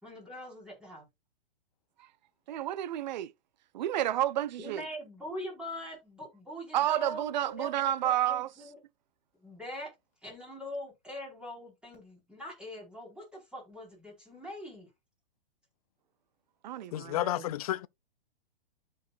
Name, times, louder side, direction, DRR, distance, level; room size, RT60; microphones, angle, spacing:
voice 1, 0.0-1.1 4.6-8.8 9.4-9.9 10.2-14.9, equal, 5° right, 4.7 m, -42 dB
voice 2, 2.5-3.3 3.7-4.8 6.7-8.5 16.6-17.5, right 12 dB, 50° right, 0.5 m, -30 dB
voice 3, 16.9-17.9, left 14 dB, 40° left, 0.4 m, -31 dB
13.0 x 4.7 x 2.5 m
figure-of-eight pair, 115°, 30 cm